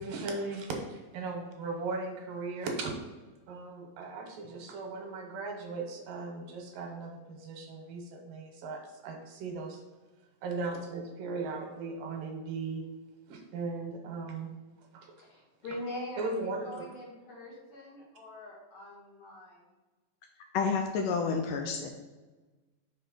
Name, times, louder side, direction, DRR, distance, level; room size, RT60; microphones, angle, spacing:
voice 1, 0.0-2.9 3.5-9.8 10.4-12.8 13.3-14.5 14.9-15.1 16.2-16.8, right 3 dB, 75° right, 2 dB, 2.5 m, -37 dB
voice 2, 15.2-19.7, left 1 dB, 55° left, -5 dB, 2.2 m, -43 dB
voice 3, 20.5-21.9, left 5 dB, 80° left, 3 dB, 2.1 m, -29 dB
5.5 x 4.2 x 5.0 m, 1.2 s
omnidirectional pair, 4.1 m